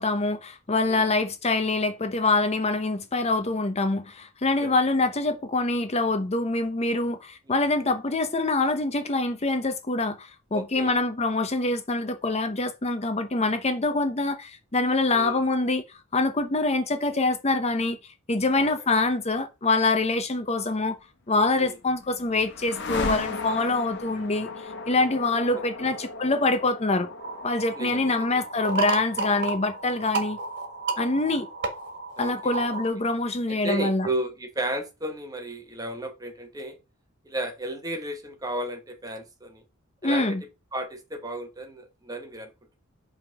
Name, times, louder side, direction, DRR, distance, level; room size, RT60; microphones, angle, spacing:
voice 1, 0.0-18.0 18.3-21.0 21.3-24.5 24.9-27.1 27.4-30.4 31.0-31.5 32.2-34.1 40.0-40.4, left 2 dB, 30° left, 0.8 m, -25 dB
voice 2, 10.5-10.9 15.1-15.4 18.5-18.7 21.6-21.8 25.5-25.9 27.7-28.4 32.2-32.7 33.5-36.8 37.2-39.6 40.0-40.3 40.7-42.5, right 1 dB, 20° right, 1.1 m, -34 dB
sound 1, 21.6-31.5, left 3 dB, 55° left, 1.2 m, -37 dB
sound 2, 27.2-32.9, right 3 dB, 55° right, 1.6 m, -32 dB
5.7 x 3.6 x 5.7 m
head